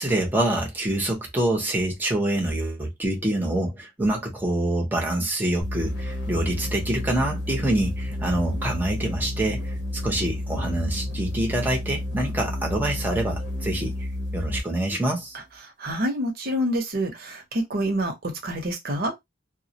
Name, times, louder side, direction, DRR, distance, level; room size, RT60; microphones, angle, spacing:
voice 1, 0.0-9.7 10.0-14.1 14.3-15.4, right 1 dB, 10° right, 0.7 m, -26 dB
sound 1, 5.6-14.7, left 1 dB, 70° left, 0.8 m, -31 dB
voice 2, 15.8-19.1, equal, 55° right, 0.8 m, -27 dB
2.2 x 2.1 x 2.7 m
head